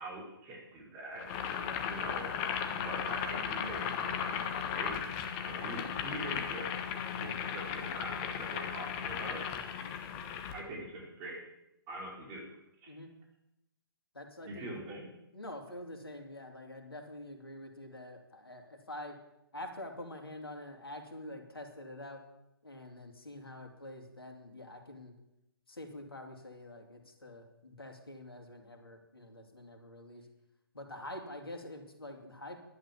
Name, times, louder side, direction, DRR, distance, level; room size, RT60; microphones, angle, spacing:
voice 1, 0.0-2.3 2.7-6.9 7.2-9.7 10.5-11.4 11.9-12.4 12.8-12.9 14.4-15.1, right 1 dB, 25° right, -2 dB, 4.5 m, -44 dB
Boiling, 1.2-10.6, left 8 dB, 25° left, 1.3 m, -36 dB
voice 2, 14.1-14.8 15.3-19.2 19.5-22.2 22.6-25.1 25.7-30.3 30.7-32.6, left 1 dB, 75° left, 3 dB, 2.8 m, -46 dB
11.5 x 10.5 x 7.1 m, 0.88 s
figure-of-eight pair, 130°, 12 cm